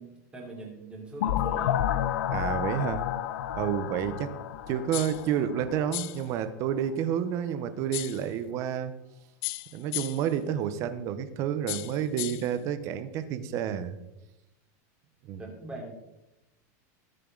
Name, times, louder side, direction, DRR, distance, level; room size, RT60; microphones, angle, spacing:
voice 1, 0.0-1.8 15.4-16.0, right 2 dB, 10° right, -2 dB, 3.0 m, -42 dB
sound 1, 1.2-5.9, left 11 dB, 80° left, 0.8 m, -30 dB
voice 2, 2.3-3.1 3.5-4.3 4.7-8.9 9.7-14.0 15.3-15.4, right 9 dB, 30° right, 11 dB, 0.8 m, -30 dB
sound 2, 4.9-5.3 5.9-6.3 7.9-8.3 9.4-10.3 11.7-12.5, left 19 dB, 40° left, 0.5 m, -35 dB
20.5 x 7.3 x 3.9 m, 0.92 s
supercardioid pair, 175°, 10 cm